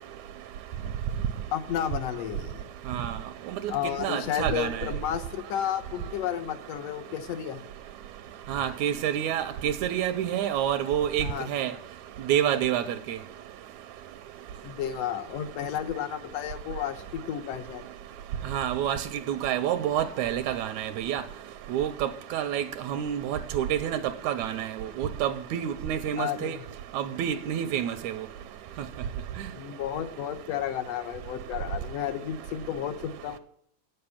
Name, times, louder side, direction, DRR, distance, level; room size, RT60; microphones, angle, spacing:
voice 1, 1.5-2.7 3.7-7.6 11.2-11.5 14.6-17.8 26.2-26.6 29.5-33.4, left 10 dB, 70° left, 1.8 m, -32 dB
voice 2, 4.0-4.8 8.5-11.7 12.3-12.8 13.1-13.2 18.5-21.2 21.7-24.0 24.2-24.7 25.0-26.6 26.9-28.1, right 10 dB, 80° right, 1.9 m, -28 dB
9.2 x 7.8 x 7.1 m
omnidirectional pair, 3.4 m